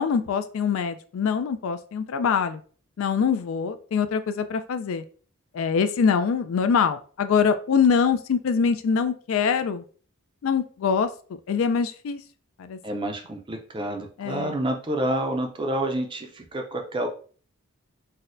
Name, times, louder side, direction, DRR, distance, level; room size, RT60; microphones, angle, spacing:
voice 1, 0.0-2.6 3.0-5.0 5.5-9.8 10.4-11.1 11.5-12.2 12.6-12.8 14.2-14.6, left 6 dB, 70° left, 11 dB, 0.3 m, -24 dB
voice 2, 12.8-17.1, right 1 dB, 20° right, 4 dB, 0.4 m, -28 dB
4.0 x 2.2 x 2.5 m, 0.41 s
head